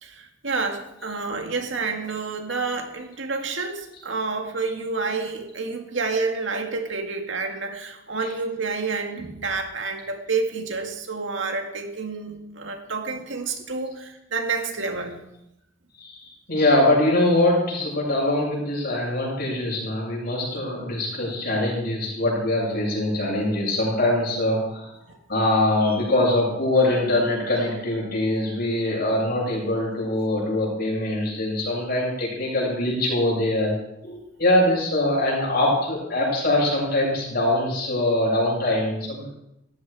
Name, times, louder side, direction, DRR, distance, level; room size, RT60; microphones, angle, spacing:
voice 1, 0.0-15.2 25.1-25.2, right 4 dB, 65° right, 4 dB, 2.3 m, -29 dB
voice 2, 16.0-24.9 25.3-33.7 34.0-39.3, left 1 dB, 50° left, -4 dB, 7.6 m, -23 dB
17.5 x 14.5 x 5.0 m, 0.85 s
head